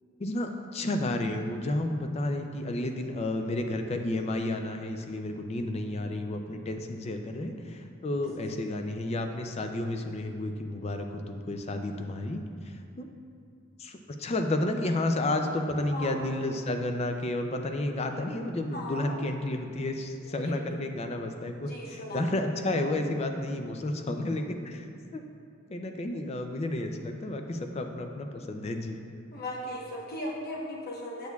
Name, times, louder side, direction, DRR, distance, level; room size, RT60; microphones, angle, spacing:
voice 1, 0.2-13.1 13.8-24.9 25.1-25.2 25.7-29.0, left 1 dB, 30° left, 5 dB, 0.4 m, -31 dB
voice 2, 18.7-19.2 20.2-20.8 21.7-22.3 29.3-31.3, left 1 dB, 50° left, -3 dB, 1.1 m, -38 dB
8.1 x 6.3 x 2.3 m, 2.3 s
head